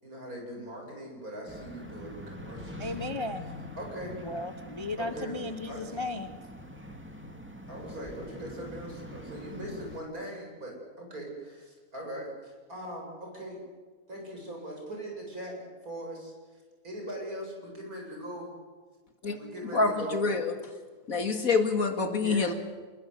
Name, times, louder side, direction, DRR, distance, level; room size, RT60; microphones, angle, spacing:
voice 1, 0.0-3.1 3.4-3.5 3.8-4.2 5.0-5.4 5.7-6.0 7.7-13.6 14.1-16.3 16.8-18.5 19.4-20.2 22.2-22.6, equal, 65° right, 0 dB, 8.4 m, -40 dB
sound 1, 1.5-10.0, left 1 dB, 5° right, 2.1 m, -44 dB
voice 2, 2.8-3.4 4.2-6.4, left 2 dB, 20° left, 9 dB, 0.9 m, -35 dB
voice 3, 19.7-20.5 21.1-22.5, left 4 dB, 60° left, 6 dB, 2.5 m, -26 dB
28.0 x 21.0 x 8.3 m, 1.4 s
omnidirectional pair, 1.7 m